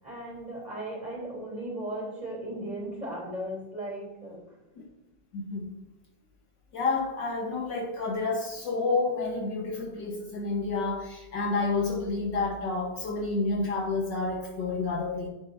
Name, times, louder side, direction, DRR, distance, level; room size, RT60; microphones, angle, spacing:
voice 1, 0.0-4.6, right 1 dB, 20° right, -4 dB, 3.4 m, -36 dB
voice 2, 5.3-5.7 6.7-15.3, left 3 dB, 60° left, 1 dB, 1.8 m, -29 dB
9.7 x 9.5 x 2.7 m, 1.0 s
omnidirectional pair, 2.2 m